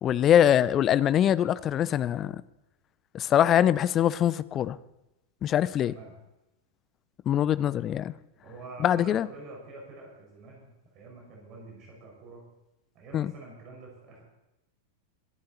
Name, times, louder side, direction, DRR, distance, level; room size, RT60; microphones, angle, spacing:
voice 1, 0.0-2.4 3.1-4.8 5.4-5.9 7.3-8.1 8.8-9.3 13.1-13.3, left 10 dB, 30° left, 0.6 m, -23 dB
voice 2, 8.4-12.4 12.9-14.2, right 3 dB, 35° right, 5.0 m, -46 dB
23.0 x 11.5 x 4.1 m
figure-of-eight pair, 90°, 0 cm